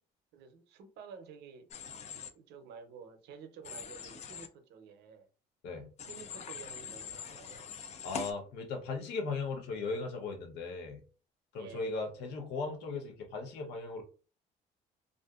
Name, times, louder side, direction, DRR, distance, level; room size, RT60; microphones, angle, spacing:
voice 1, 0.3-1.7 2.3-5.3 6.0-7.6 11.5-11.8, right 6 dB, 80° right, 0.6 m, -51 dB
Human voice / Train, 1.7-2.3 3.6-4.5 6.0-8.3, left 7 dB, 40° left, 0.4 m, -43 dB
voice 2, 8.0-11.0 11.5-14.0, left 4 dB, 90° left, 0.8 m, -37 dB
2.5 x 2.4 x 2.3 m
cardioid pair, 110°, 17 cm